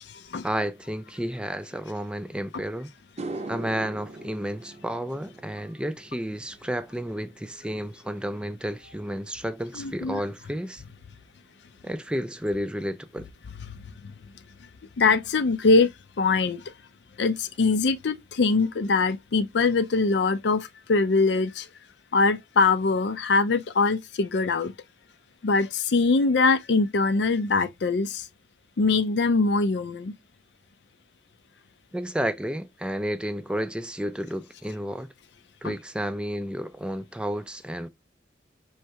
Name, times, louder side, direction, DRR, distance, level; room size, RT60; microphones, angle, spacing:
voice 1, 0.4-2.9 3.5-10.8 11.8-13.3 31.9-35.1 35.6-37.9, equal, 5° right, 0.3 m, -31 dB
sound 1, 2.4-2.5 3.0-11.5 11.8-12.2 15.8-15.9 17.5-17.6 17.9-18.1 18.3-18.9, right 2 dB, 40° right, 0.6 m, -43 dB
voice 2, 9.8-10.2 15.0-15.9 16.2-16.6 17.2-21.7 22.1-24.7 25.4-28.2 28.8-30.1 35.6-35.7, left 4 dB, 75° left, 0.5 m, -22 dB
4.6 x 3.2 x 2.8 m
head